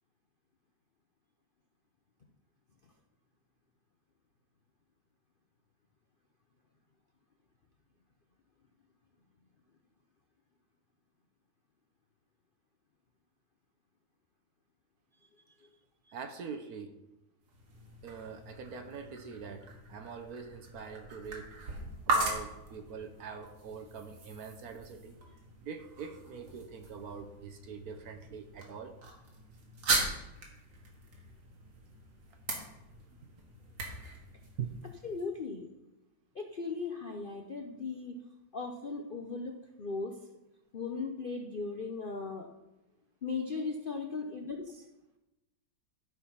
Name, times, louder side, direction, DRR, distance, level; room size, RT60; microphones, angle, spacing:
voice 1, 16.1-17.0 18.0-21.6 22.1-25.2 25.6-29.0 33.2-33.3 34.6-34.7, right 6 dB, 60° right, 7 dB, 1.1 m, -43 dB
sound 1, 17.4-35.2, right 2 dB, 80° right, 2.5 m, -39 dB
voice 2, 35.0-35.7 36.3-38.1 38.5-40.1 40.7-42.5 43.2-44.8, left 4 dB, 70° left, 3 dB, 0.5 m, -37 dB
13.0 x 4.6 x 5.6 m, 0.95 s
omnidirectional pair, 2.1 m